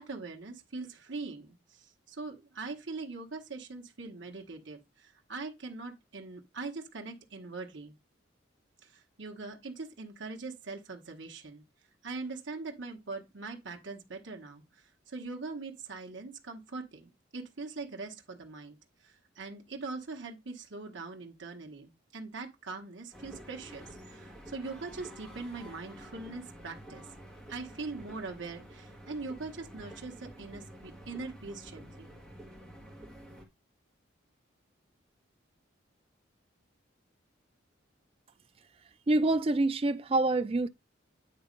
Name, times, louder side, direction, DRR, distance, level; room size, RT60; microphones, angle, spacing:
voice 1, 0.0-8.0 8.8-11.6 12.0-14.6 15.1-18.8 19.0-27.0 27.5-32.1, right 3 dB, 70° right, 1.3 m, -42 dB
sound 1, 23.1-33.4, equal, 5° left, 1.6 m, -49 dB
voice 2, 39.1-40.7, right 2 dB, 30° right, 0.4 m, -26 dB
8.7 x 3.0 x 5.3 m
head